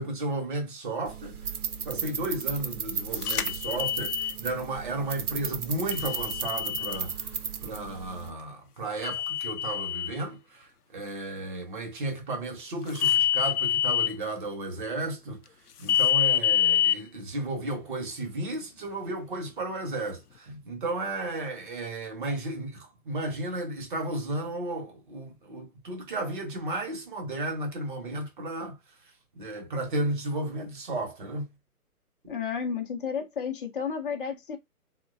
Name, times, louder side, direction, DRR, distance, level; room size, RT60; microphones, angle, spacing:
voice 1, 0.0-1.4 1.8-7.3 7.6-15.4 15.8-28.8 29.3-31.5, right 2 dB, 35° right, 0.8 m, -33 dB
sound 1, 1.0-8.3, right 7 dB, 70° right, 0.7 m, -35 dB
sound 2, 3.2-4.3 5.9-7.0 9.0-10.1 13.0-14.1 15.9-17.0, left 10 dB, 80° left, 0.5 m, -26 dB
voice 2, 32.3-34.6, left 6 dB, 35° left, 0.6 m, -32 dB
3.0 x 2.2 x 2.4 m
figure-of-eight pair, 135°, 45 cm